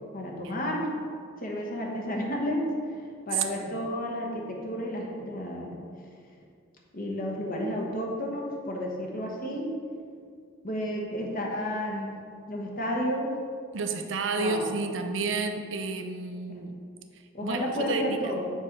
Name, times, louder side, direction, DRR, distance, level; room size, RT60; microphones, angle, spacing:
voice 1, 0.1-0.9 1.4-2.6 3.3-5.7 6.9-9.7 10.6-12.2 12.5-13.3 14.4-14.6 16.5-16.6 17.3-18.5, equal, 45° left, -1 dB, 1.2 m, -31 dB
voice 2, 3.3-3.8 13.7-16.7 17.4-18.3, right 4 dB, 70° right, 6 dB, 0.6 m, -31 dB
7.0 x 4.2 x 5.3 m, 2.2 s
head